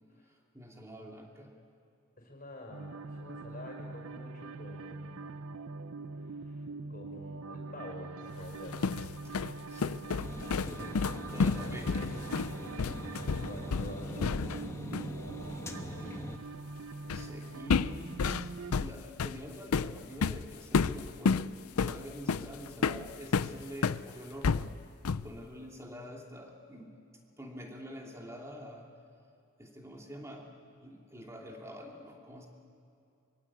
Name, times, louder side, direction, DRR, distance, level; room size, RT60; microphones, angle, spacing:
voice 1, 0.2-1.6 9.2-10.0 10.6-12.5 14.2-14.7 15.7-16.1 16.9-24.8 25.1-27.1 27.4-28.9 29.6-30.5 30.8-32.5, equal, 15° right, 0 dB, 2.8 m, -47 dB
voice 2, 2.2-5.5 6.2-8.7 13.0-14.7, left 1 dB, 35° left, 0 dB, 5.6 m, -49 dB
sound 1, 2.7-18.8, right 3 dB, 70° right, 0.6 m, -43 dB
sound 2, 8.5-14.7 14.9-15.2 17.1-17.3 17.7-24.0 24.4-25.4, left 5 dB, 85° left, 0.5 m, -31 dB
sound 3, 10.2-16.4, left 1 dB, 15° left, 1.2 m, -43 dB
24.5 x 23.5 x 8.7 m, 2.6 s
head